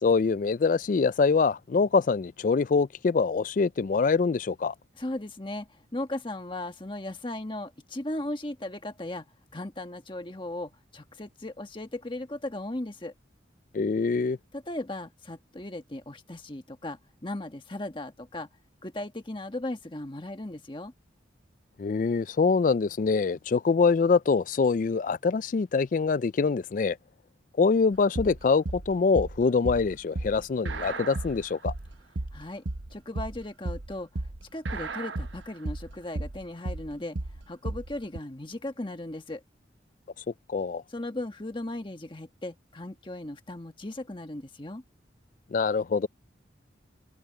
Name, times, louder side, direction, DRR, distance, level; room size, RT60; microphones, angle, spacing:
voice 1, 0.0-4.7 13.7-14.4 21.8-27.0 27.6-31.7 40.5-40.8 45.5-46.1, left 4 dB, 45° left, 0.3 m, -24 dB
voice 2, 5.0-9.2 9.5-13.1 14.5-18.5 18.8-20.9 32.3-32.6 32.9-34.2 34.5-37.2 37.5-39.4 40.9-44.8, left 1 dB, 25° left, 1.4 m, -37 dB
sound 1, 27.9-38.2, right 2 dB, 80° right, 1.0 m, -34 dB
head